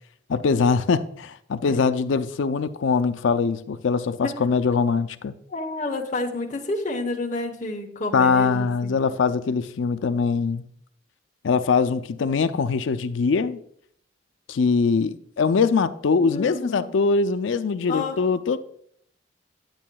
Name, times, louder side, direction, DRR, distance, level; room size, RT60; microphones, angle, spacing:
voice 1, 0.3-5.3 8.1-10.6 11.4-13.6 14.5-18.6, left 5 dB, 75° left, 0.4 m, -22 dB
voice 2, 5.5-9.0 16.2-16.9 17.9-18.2, left 2 dB, 40° left, 0.9 m, -30 dB
10.5 x 8.3 x 2.2 m
head